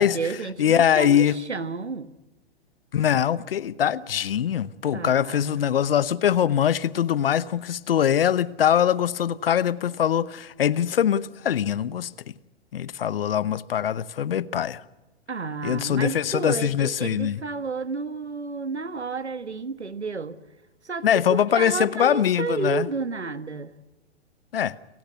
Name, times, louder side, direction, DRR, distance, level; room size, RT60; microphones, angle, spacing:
voice 1, 0.0-2.1 4.9-5.6 15.3-20.4 20.8-23.8, right 4 dB, 85° right, 1.4 m, -31 dB
voice 2, 0.6-1.4 2.9-12.3 12.7-14.8 15.6-17.4 21.0-22.9 24.5-24.8, left 9 dB, 60° left, 1.0 m, -23 dB
29.5 x 16.5 x 9.6 m
figure-of-eight pair, 115°, 33 cm